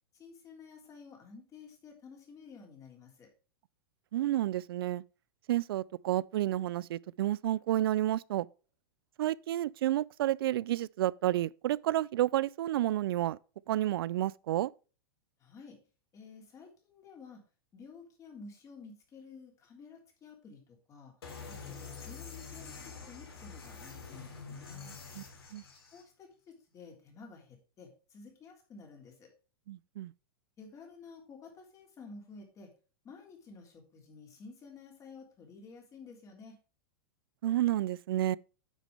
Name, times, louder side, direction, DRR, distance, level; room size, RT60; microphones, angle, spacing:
voice 1, 0.1-3.3 15.4-15.8 16.1-17.4 17.7-21.1 21.5-24.9 25.9-29.3 30.6-32.7 33.0-36.6, left 4 dB, 25° left, 3.4 m, -52 dB
voice 2, 4.1-5.0 5.5-8.5 9.2-13.4 13.7-14.7 25.2-25.3 25.5-25.6 29.7-30.1 37.4-38.4, right 14 dB, 75° right, 0.4 m, -30 dB
sound 1, 21.2-26.0, left 5 dB, 90° left, 3.5 m, -46 dB
9.4 x 6.2 x 3.4 m
hypercardioid pair, 130°, 13 cm